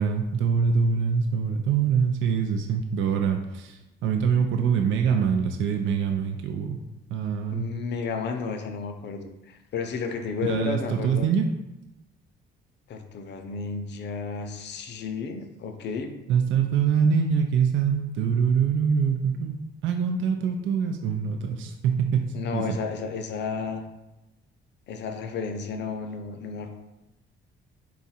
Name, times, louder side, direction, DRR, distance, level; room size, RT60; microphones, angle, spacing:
voice 1, 0.0-6.8 7.1-7.7 10.4-11.5 16.3-19.6 19.8-22.7, right 6 dB, 75° right, 4 dB, 0.4 m, -24 dB
voice 2, 7.5-11.3 12.9-16.2 22.3-23.9 24.9-26.8, left 5 dB, 60° left, 6 dB, 0.5 m, -32 dB
3.9 x 2.4 x 4.1 m, 0.97 s
cardioid pair, 90°, 20 cm